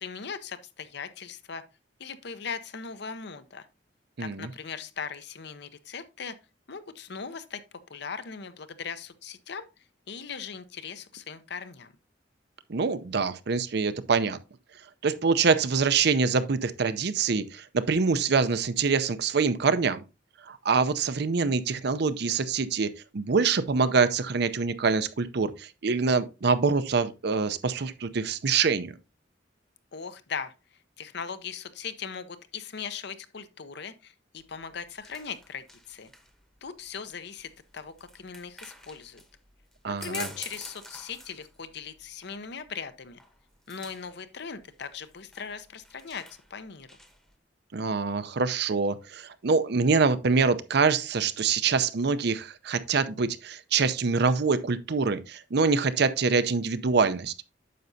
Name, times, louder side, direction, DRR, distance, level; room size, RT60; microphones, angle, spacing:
voice 1, 0.0-1.6 2.0-3.7 4.2-6.3 6.7-7.6 7.9-9.7 10.1-11.9 29.9-30.5 31.0-36.1 36.6-39.2 39.9-43.2 43.7-46.2 46.5-46.9, left 6 dB, 65° left, 0.7 m, -39 dB
voice 2, 4.2-4.5 12.7-14.4 15.0-20.0 20.5-29.0 39.8-40.3 47.7-57.3, right 4 dB, 65° right, 0.6 m, -25 dB
sound 1, 34.4-47.4, equal, 5° left, 0.9 m, -49 dB
9.3 x 6.6 x 2.7 m
head